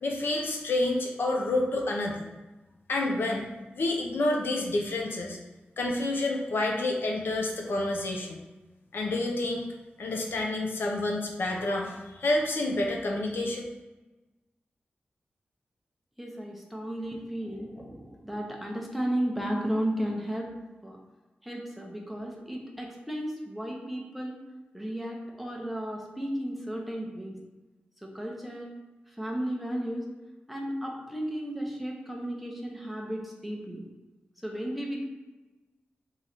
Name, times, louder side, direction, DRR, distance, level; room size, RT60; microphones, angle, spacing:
voice 1, 0.0-2.3 2.9-3.5 3.7-5.4 5.8-8.4 8.9-9.7 10.0-13.6, left 2 dB, 75° left, 0 dB, 0.7 m, -29 dB
voice 2, 16.2-20.5 20.8-21.0 21.4-24.4 24.7-27.4 28.0-28.7 29.2-30.0 30.5-33.8 34.4-35.0, equal, ahead, -1 dB, 0.7 m, -34 dB
3.8 x 3.2 x 4.1 m, 1.1 s
wide cardioid pair, 175°, 4 cm